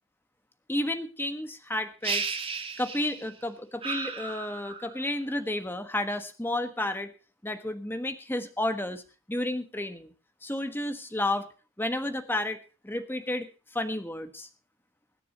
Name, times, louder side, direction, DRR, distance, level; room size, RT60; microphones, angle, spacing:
voice 1, 0.7-2.2 2.8-7.1 7.4-9.0 9.3-10.1 10.4-11.5 11.8-14.5, left 1 dB, 10° left, 8 dB, 1.3 m, -31 dB
sound 1, 2.0-3.4 3.8-5.1, right 5 dB, 25° right, 1.8 m, -34 dB
24.5 x 9.9 x 2.9 m, 0.34 s
head